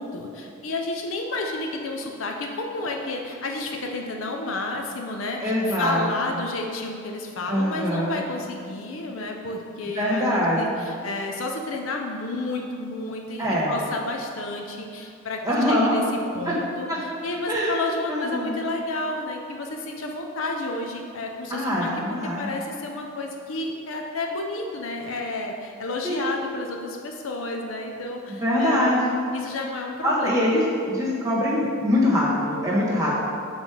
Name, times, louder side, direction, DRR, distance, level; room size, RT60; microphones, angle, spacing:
voice 1, 0.0-15.4 15.7-16.0 16.3-29.0 29.3-30.6, left 2 dB, 70° left, 2 dB, 0.6 m, -31 dB
voice 2, 5.4-6.1 7.5-8.2 9.9-10.9 13.4-13.8 15.4-16.0 16.4-16.6 16.9-17.2 17.5-17.8 18.1-18.6 21.5-22.5 26.0-26.3 28.3-29.3 30.0-33.1, left 1 dB, 15° right, -6 dB, 1.4 m, -23 dB
6.4 x 3.9 x 4.9 m, 2.4 s
head